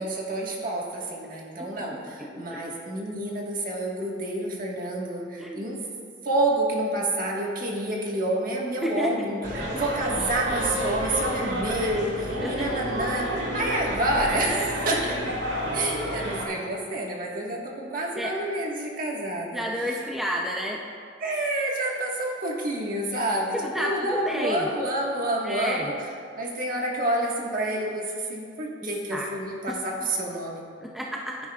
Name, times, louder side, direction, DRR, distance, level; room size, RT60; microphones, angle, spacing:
voice 1, 0.0-5.8 6.2-9.4 9.7-15.2 15.7-20.0 21.2-25.9 26.4-30.6, right 1 dB, 45° right, -2 dB, 1.5 m, -28 dB
voice 2, 2.2-2.6 5.4-5.7 8.8-9.8 12.4-12.7 18.2-18.4 19.5-20.8 23.5-24.7 25.4-25.9 28.8-29.3 29.7-29.8 30.8-31.4, equal, ahead, -2 dB, 0.5 m, -31 dB
sound 1, 9.4-16.5, equal, 65° right, 1.7 m, -30 dB
15.5 x 9.1 x 2.4 m, 2.3 s
head